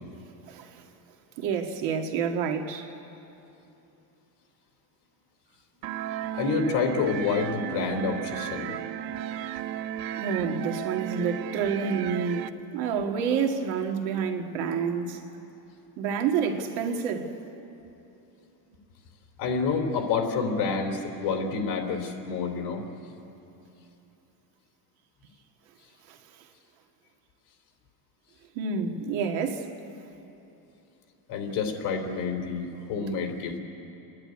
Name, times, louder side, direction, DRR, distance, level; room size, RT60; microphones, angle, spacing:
voice 1, 0.5-0.8 1.4-2.9 10.2-12.4 12.7-15.2 16.0-17.3 26.1-26.2 28.6-29.7, right 6 dB, 80° right, 4 dB, 2.0 m, -28 dB
sound 1, 5.8-12.5, right 10 dB, 50° right, 0.7 m, -34 dB
voice 2, 6.3-8.7 19.4-22.8 31.3-33.6, left 5 dB, 60° left, 3 dB, 3.1 m, -28 dB
30.0 x 10.5 x 9.6 m, 2.9 s
cardioid pair, 165°, 44 cm